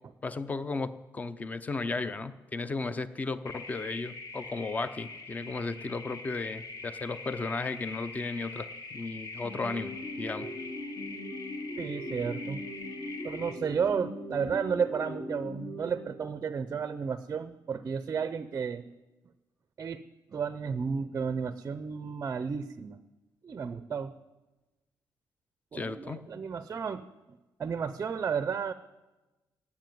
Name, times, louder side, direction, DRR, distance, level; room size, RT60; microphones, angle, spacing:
voice 1, 0.2-8.7 8.9-10.5 25.7-26.3, left 3 dB, 20° left, 14 dB, 0.5 m, -35 dB
sound 1, 3.5-13.5, left 3 dB, 50° left, 1.5 m, -44 dB
sound 2, 9.4-16.6, left 1 dB, 65° left, 4.1 m, -40 dB
voice 2, 11.8-12.6 13.2-18.9 19.8-20.0 20.3-23.0 23.4-24.1 25.7-28.7, right 6 dB, 30° right, 12 dB, 0.5 m, -33 dB
17.0 x 7.3 x 9.2 m, 1.1 s
wide cardioid pair, 175°, 8 cm